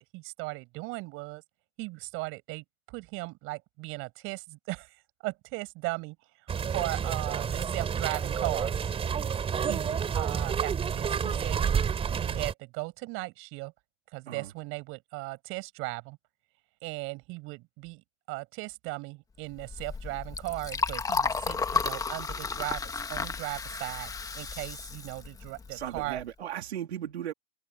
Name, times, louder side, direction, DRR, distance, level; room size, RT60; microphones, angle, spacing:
voice 1, 0.0-1.4 1.8-5.0 5.2-6.2 6.7-8.9 9.6-11.9 12.2-13.7 14.1-16.2 16.8-26.2, right 24 dB, 40° right, 7.0 m, -37 dB
sound 1, 6.5-12.5, right 7 dB, 20° right, 3.5 m, -29 dB
Liquid, 19.5-26.2, left 5 dB, 10° left, 1.6 m, -33 dB
voice 2, 25.7-27.3, right 10 dB, 90° right, 3.5 m, -36 dB
hypercardioid pair, 135°, 32 cm